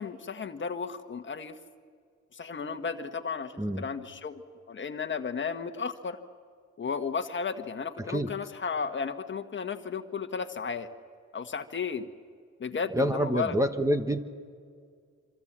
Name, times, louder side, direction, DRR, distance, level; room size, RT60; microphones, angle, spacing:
voice 1, 0.0-1.6 2.3-4.4 4.7-6.2 6.8-10.9 11.3-12.1 12.6-13.6, left 5 dB, 40° left, 7 dB, 1.5 m, -34 dB
voice 2, 8.0-8.3 12.9-14.2, equal, 10° right, 7 dB, 1.3 m, -27 dB
26.0 x 25.0 x 7.5 m, 2.1 s
cardioid pair, 90°, 30 cm